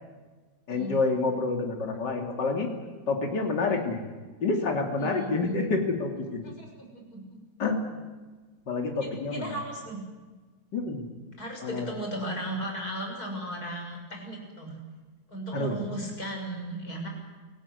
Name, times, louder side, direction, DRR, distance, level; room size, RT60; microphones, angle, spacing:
voice 1, 0.7-2.7 3.1-4.0 4.4-6.4 7.6-7.8 8.7-9.5 10.7-11.1 11.6-11.9 15.5-15.8, left 3 dB, 80° left, 2 dB, 3.4 m, -28 dB
voice 2, 5.0-5.6 6.4-7.2 9.3-10.0 11.4-14.8 15.3-17.1, right 1 dB, 55° left, 2 dB, 7.2 m, -36 dB
28.0 x 18.0 x 8.1 m, 1.3 s
omnidirectional pair, 1.9 m